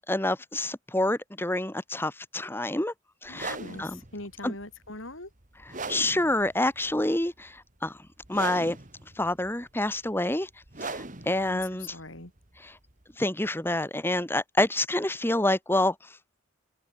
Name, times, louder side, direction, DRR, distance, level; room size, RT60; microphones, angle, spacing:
voice 1, 0.1-2.9 3.2-4.0 4.4-4.5 5.9-7.5 7.8-7.9 8.3-8.8 9.2-10.5 10.8-11.9 12.6-12.7 13.2-15.9, left 1 dB, 10° left, 1.3 m, -27 dB
voice 2, 3.3-5.3 11.2-12.3, left 2 dB, 70° left, 5.3 m, -41 dB
sound 1, 3.3-13.1, right 3 dB, 35° right, 2.2 m, -41 dB
head